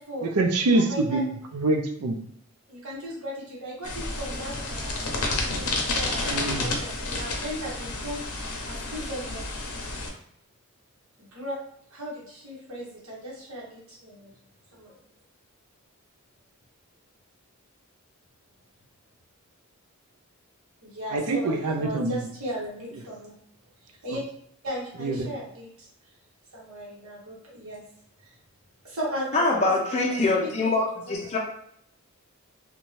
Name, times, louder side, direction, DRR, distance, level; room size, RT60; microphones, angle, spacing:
voice 1, 0.2-2.2 6.2-6.7 21.1-22.3 25.0-25.3, right 2 dB, 90° right, 5 dB, 0.4 m, -25 dB
voice 2, 0.7-1.2 2.7-9.5 11.2-11.6 11.9-14.3 14.7-15.0 20.8-23.3 23.8-24.2 24.6-25.9 26.5-27.8 28.2-28.3 28.8-31.0, equal, 75° right, -5 dB, 1.0 m, -37 dB
sound 1, 3.8-10.1, left 2 dB, 85° left, 0.6 m, -30 dB
voice 3, 29.3-31.4, left 2 dB, 30° left, -1 dB, 0.4 m, -24 dB
2.6 x 2.2 x 3.0 m, 0.67 s
head